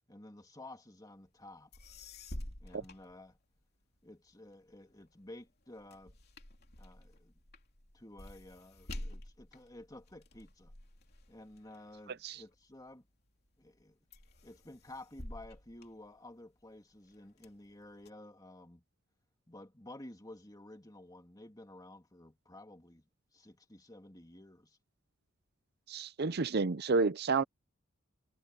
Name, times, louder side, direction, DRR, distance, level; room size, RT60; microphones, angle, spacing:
voice 1, 0.1-1.7 2.6-3.4 4.0-6.1 6.8-7.4 7.9-10.7 11.3-13.1 13.6-14.0 14.4-18.8 19.5-23.1 23.3-24.8, left 1 dB, 20° left, 2.8 m, -52 dB
sound 1, 1.4-1.5 1.7-3.8 4.3-12.9 13.4-13.8 14.1-16.6 17.1-18.1, left 1 dB, 50° left, 3.2 m, -49 dB
voice 2, 25.9-27.4, right 4 dB, 50° right, 0.6 m, -30 dB
head